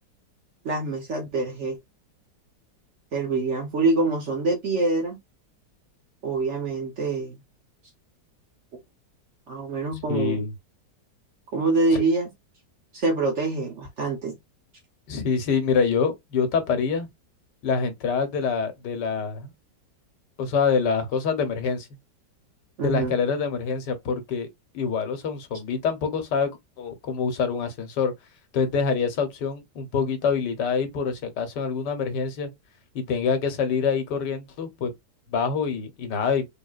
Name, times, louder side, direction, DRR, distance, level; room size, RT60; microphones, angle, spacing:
voice 1, 0.6-1.8 3.1-5.2 6.2-7.4 8.7-8.8 9.5-10.4 11.5-12.3 12.9-14.4 22.8-23.2, right 3 dB, 50° right, 1.0 m, -25 dB
voice 2, 10.1-10.5 11.9-12.0 15.1-17.1 17.6-19.5 20.4-21.9 22.8-24.5 24.7-26.5 26.8-28.1 28.5-32.5 32.9-34.9 35.3-36.5, left 5 dB, 70° left, 1.5 m, -25 dB
3.6 x 3.6 x 2.4 m
omnidirectional pair, 1.9 m